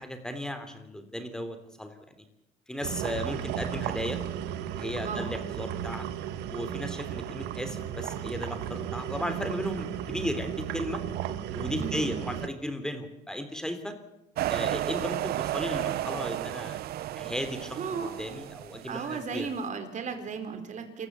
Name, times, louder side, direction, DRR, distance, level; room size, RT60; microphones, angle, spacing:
voice 1, 0.0-2.2 2.7-4.2 4.7-6.1 6.5-11.0 11.5-14.0 14.5-16.8 17.1-19.5, equal, 5° left, 8 dB, 3.4 m, -35 dB
sound 1, 2.8-12.5, right 10 dB, 90° right, 1.5 m, -35 dB
voice 2, 11.8-12.1 17.8-18.1 18.9-21.1, right 5 dB, 45° right, 7 dB, 4.3 m, -35 dB
sound 2, 14.4-19.3, right 13 dB, 70° right, 0.8 m, -33 dB
27.5 x 15.0 x 8.3 m, 0.89 s
cardioid pair, 110°, 17 cm